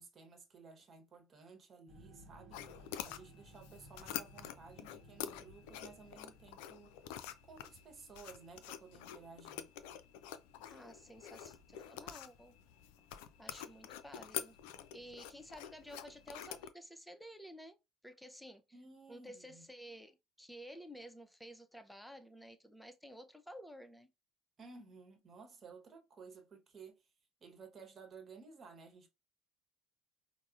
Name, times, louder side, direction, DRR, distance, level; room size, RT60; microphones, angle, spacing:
voice 1, 0.0-7.1 7.4-9.7 18.7-19.7 24.6-27.1 27.4-29.1, right 4 dB, 35° right, 1.1 m, -56 dB
sound 1, 1.9-7.1, right 1 dB, 55° right, 0.8 m, -59 dB
sound 2, 2.5-16.7, left 10 dB, 65° left, 0.3 m, -47 dB
voice 2, 10.7-12.6 13.4-14.6 14.9-17.8 18.0-18.6 19.1-24.1, equal, 5° left, 0.5 m, -52 dB
4.7 x 2.0 x 2.4 m
figure-of-eight pair, 60°, 0 cm